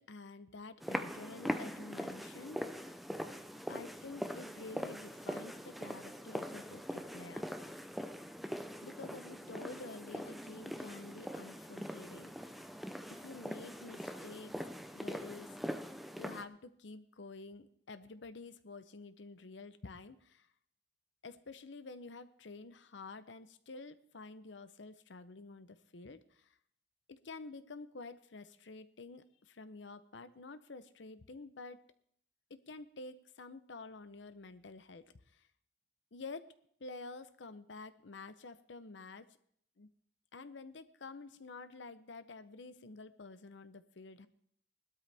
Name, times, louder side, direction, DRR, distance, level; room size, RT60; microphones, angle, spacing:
voice 1, 0.0-2.9 3.7-7.5 8.8-12.6 13.1-14.5 14.9-15.5 16.2-20.5 21.2-26.6 27.1-31.8 32.5-35.1 35.3-35.5 36.1-36.5 36.8-39.4 39.8-39.9 40.3-44.3, left 3 dB, 85° left, 13 dB, 0.7 m, -49 dB
sound 1, 0.8-16.4, equal, ahead, 0.5 m, -42 dB
18.0 x 12.5 x 3.4 m, 0.65 s
head